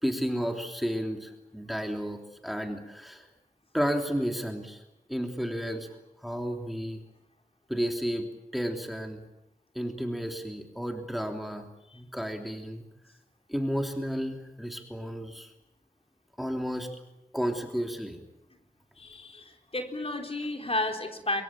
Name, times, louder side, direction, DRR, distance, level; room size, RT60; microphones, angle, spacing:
voice 1, 0.0-3.3 3.7-4.8 5.1-5.9 6.2-7.0 7.7-9.2 9.7-11.7 11.9-12.8 13.5-15.5 16.4-16.9 17.3-18.2, equal, ahead, 4 dB, 3.2 m, -32 dB
voice 2, 19.0-21.4, left 2 dB, 40° left, 4 dB, 3.8 m, -32 dB
24.5 x 23.0 x 9.0 m, 0.90 s
wide cardioid pair, 75°, 15 cm